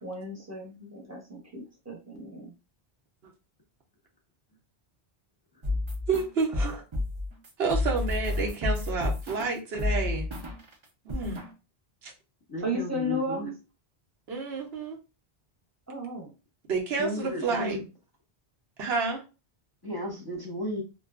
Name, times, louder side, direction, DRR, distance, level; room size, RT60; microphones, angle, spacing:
voice 1, 0.0-2.5 12.6-13.5 15.9-16.3, equal, 15° right, -1 dB, 0.8 m, -34 dB
sound 1, 5.6-10.7 11.1-11.5, left 2 dB, 40° right, 0.5 m, -30 dB
voice 2, 6.1-6.8 7.6-10.3 11.0-11.4 12.0-12.1 14.3-15.0 16.7-17.8 18.8-19.2, right 4 dB, 80° right, 0 dB, 1.0 m, -29 dB
voice 3, 12.5-13.5 17.0-17.8 19.8-20.8, left 1 dB, 25° left, -4 dB, 0.7 m, -34 dB
2.6 x 2.3 x 2.4 m, 0.30 s
omnidirectional pair, 1.0 m